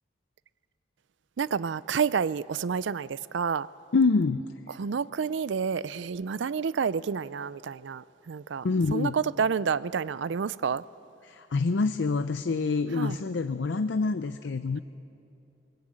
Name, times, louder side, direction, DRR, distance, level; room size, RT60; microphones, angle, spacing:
voice 1, 1.4-3.7 4.8-8.7 8.9-10.8 13.0-13.2, right 6 dB, 90° right, 0.4 m, -29 dB
voice 2, 3.9-4.4 8.6-9.2 11.2-14.8, left 4 dB, 85° left, 0.5 m, -26 dB
21.5 x 19.5 x 8.9 m
head